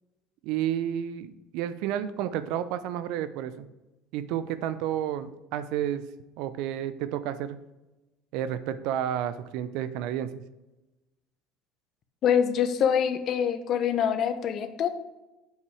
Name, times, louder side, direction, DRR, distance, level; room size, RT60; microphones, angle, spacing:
voice 1, 0.4-3.7 4.1-6.0 6.4-7.6 8.3-10.4, right 10 dB, 70° right, 13 dB, 0.6 m, -31 dB
voice 2, 12.2-14.9, left 8 dB, 55° left, 10 dB, 0.9 m, -25 dB
7.9 x 5.5 x 4.8 m, 1.0 s
hypercardioid pair, 80°, 0 cm